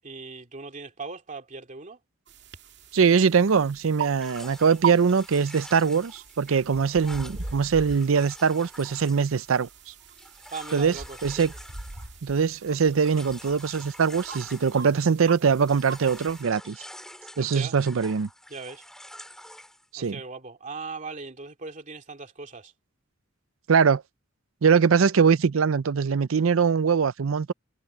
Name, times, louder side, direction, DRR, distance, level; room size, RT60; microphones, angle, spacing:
voice 1, 0.0-2.0 10.5-11.2 17.4-17.8 18.5-18.9 20.0-22.7, right 4 dB, 40° right, 2.6 m, -39 dB
sound 1, 2.3-16.4, right 7 dB, 60° right, 2.2 m, -40 dB
voice 2, 2.9-9.7 10.7-10.9 11.2-11.5 12.2-16.8 17.4-18.3 19.9-20.2 23.7-24.0 24.6-27.5, right 6 dB, 80° right, 0.5 m, -22 dB
sound 2, 4.2-15.3 15.5-19.9, equal, 5° left, 4.4 m, -47 dB
head